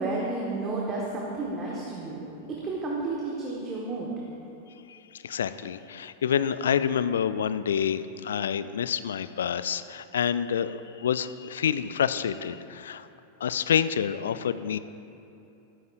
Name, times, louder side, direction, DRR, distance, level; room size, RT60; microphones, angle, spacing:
voice 1, 0.0-4.1, right 3 dB, 25° right, -4 dB, 1.7 m, -32 dB
voice 2, 4.9-13.1 13.4-14.8, left 8 dB, 65° left, 14 dB, 0.4 m, -28 dB
14.5 x 13.5 x 2.6 m, 2.8 s
figure-of-eight pair, 90°, 0 cm